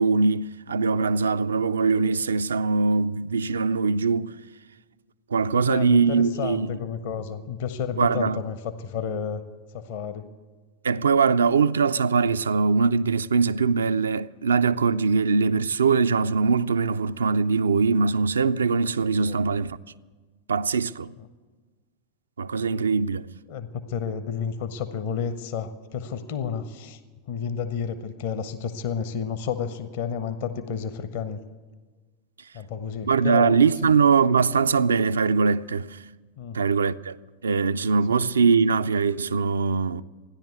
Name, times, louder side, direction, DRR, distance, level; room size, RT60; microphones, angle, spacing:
voice 1, 0.0-4.3 5.3-6.8 8.0-8.4 10.8-19.8 20.5-21.1 22.4-23.3 33.1-36.0 36.5-37.2 37.4-40.0, right 5 dB, 70° right, 0.3 m, -22 dB
voice 2, 5.6-9.5 9.7-10.3 19.0-19.4 23.5-27.0 27.3-31.4 32.5-33.6 36.4-36.6 38.1-38.2, left 7 dB, 50° left, 0.8 m, -31 dB
14.5 x 10.5 x 8.1 m
figure-of-eight pair, 90°, 0 cm